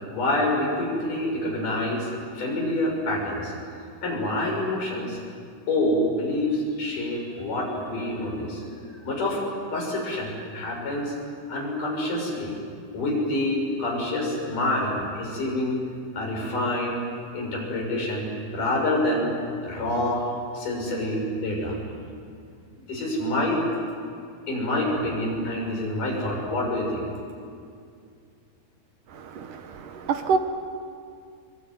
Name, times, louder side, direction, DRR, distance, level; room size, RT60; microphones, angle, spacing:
voice 1, 0.1-2.1 2.4-3.5 4.0-5.2 5.7-9.4 9.7-11.1 11.5-12.5 12.9-15.8 16.1-17.1 17.3-18.3 18.5-19.4 19.6-20.3 20.5-21.8 22.8-23.6 24.5-27.1, left 1 dB, 55° left, -1 dB, 8.0 m, -27 dB
voice 2, 29.1-30.4, right 5 dB, 65° right, 7 dB, 2.6 m, -27 dB
24.5 x 22.5 x 9.7 m, 2.3 s
omnidirectional pair, 4.4 m